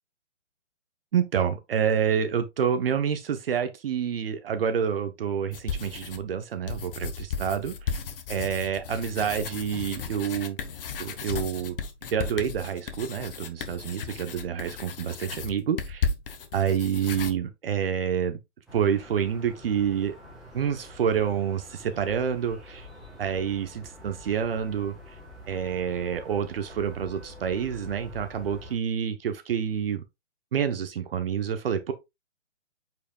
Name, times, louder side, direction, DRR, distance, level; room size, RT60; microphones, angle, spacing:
voice 1, 1.1-8.0 8.3-10.6 11.0-11.8 12.1-16.1 16.5-18.4 18.7-20.2 20.5-22.9 23.2-25.2 25.5-30.0 30.5-31.9, right 8 dB, 55° right, 0.9 m, -28 dB
sound 1, 5.5-6.3 6.7-17.3, left 6 dB, 50° left, 1.3 m, -35 dB
sound 2, 18.7-28.7, left 1 dB, ahead, 0.4 m, -46 dB
8.3 x 4.9 x 2.3 m
hypercardioid pair, 145°, 36 cm